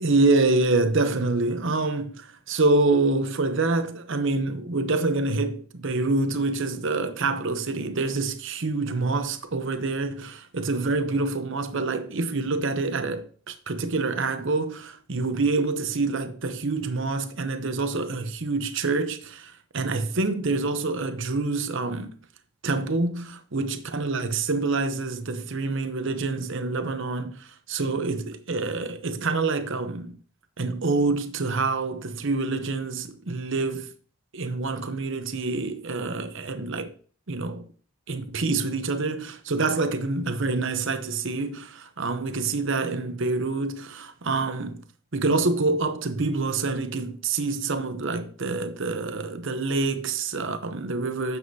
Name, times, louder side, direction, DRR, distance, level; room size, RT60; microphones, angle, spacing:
voice 1, 0.0-22.1 22.6-30.2 30.6-33.9 34.3-36.9 37.3-37.7 38.1-44.8 45.1-51.4, right 3 dB, 55° right, 0.8 m, -26 dB
9.4 x 7.1 x 2.8 m
head